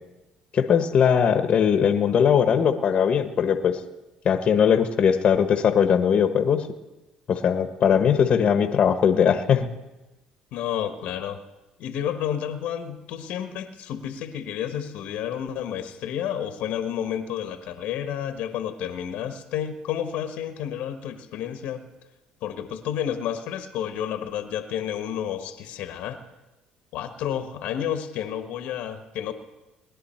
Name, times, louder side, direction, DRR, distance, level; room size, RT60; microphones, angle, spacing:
voice 1, 0.5-3.8 4.2-6.6 7.3-9.7, left 7 dB, 50° left, 8 dB, 1.2 m, -20 dB
voice 2, 10.5-11.4 11.8-21.8 22.4-26.2 26.9-29.3, left 9 dB, 75° left, 8 dB, 1.2 m, -30 dB
20.5 x 11.0 x 4.4 m, 1.0 s
supercardioid pair, 80°, 2 cm